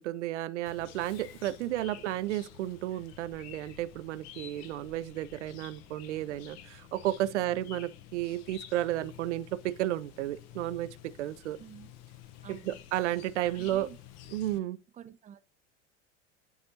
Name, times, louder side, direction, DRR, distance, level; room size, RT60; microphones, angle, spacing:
voice 1, 0.0-11.6 12.7-13.9 14.3-14.8, right 14 dB, 70° right, 0.5 m, -33 dB
Chirp tweet, 0.7-14.6, left 11 dB, 45° left, 0.8 m, -51 dB
voice 2, 1.6-1.9 7.3-7.6 11.6-12.0 12.4-12.8 13.5-14.0 14.9-15.4, right 9 dB, 20° right, 0.5 m, -49 dB
10.5 x 4.2 x 2.8 m
figure-of-eight pair, 80°, 37 cm